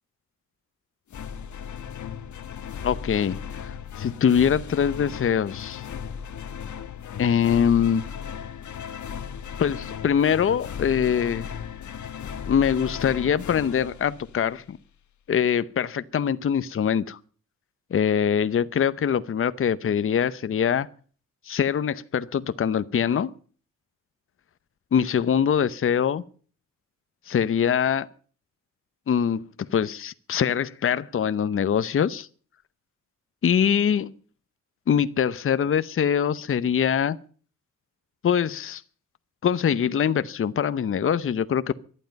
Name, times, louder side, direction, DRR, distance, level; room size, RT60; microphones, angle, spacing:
sound 1, 1.1-14.7, left 7 dB, 65° left, 1.6 m, -36 dB
voice 1, 2.8-5.8 7.2-8.0 9.6-11.5 12.4-14.8 15.3-17.2 17.9-20.9 21.5-23.3 24.9-26.2 27.3-28.1 29.1-32.3 33.4-34.1 34.9-37.2 38.2-38.8 39.4-41.7, left 8 dB, 40° left, 0.8 m, -23 dB
18.5 x 12.0 x 5.3 m
cardioid pair, 120°, 32 cm